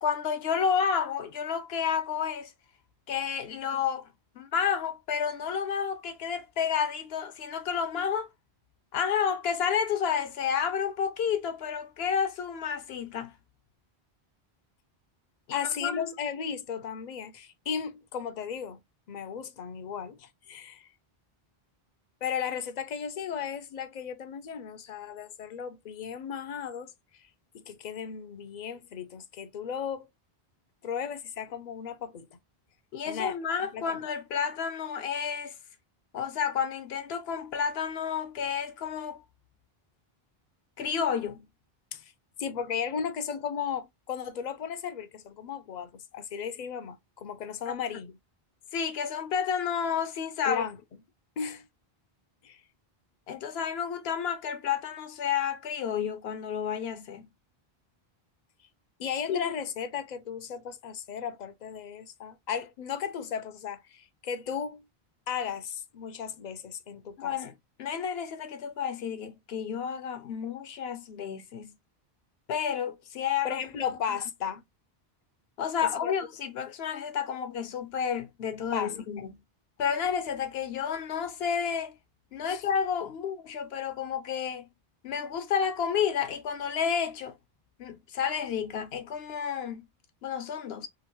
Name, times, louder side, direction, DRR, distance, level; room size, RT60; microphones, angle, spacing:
voice 1, 0.0-2.5 3.1-4.1 4.4-8.3 8.9-13.3 15.5-16.1 32.9-35.5 36.1-39.2 40.8-41.5 47.7-47.8 48.7-50.7 53.3-57.3 59.3-59.4 67.2-67.5 67.8-71.8 72.5-73.9 75.6-79.4 79.8-81.9 82.3-84.7 85.0-87.4 87.8-89.9 90.2-90.9, left 7 dB, 80° left, 0.9 m, -30 dB
voice 2, 15.5-18.8 19.1-20.9 22.2-26.9 27.5-30.1 30.8-32.3 33.0-33.4 33.7-34.0 41.9-42.0 42.4-48.1 50.5-50.8 51.4-51.7 52.4-52.6 59.0-64.8 65.3-67.4 73.4-74.6 76.0-76.1 78.7-78.9 82.5-82.6, left 7 dB, 55° left, 0.5 m, -35 dB
2.9 x 2.5 x 2.9 m
omnidirectional pair, 1.0 m